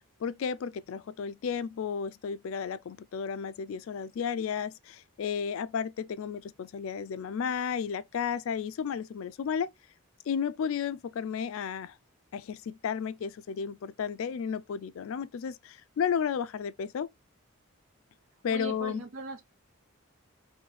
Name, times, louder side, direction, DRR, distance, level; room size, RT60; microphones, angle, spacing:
voice 1, 0.2-9.7 10.3-11.9 12.3-17.1 18.4-19.0, left 7 dB, 65° left, 0.3 m, -33 dB
voice 2, 18.5-19.5, right 3 dB, 65° right, 0.8 m, -39 dB
3.2 x 2.7 x 3.8 m
head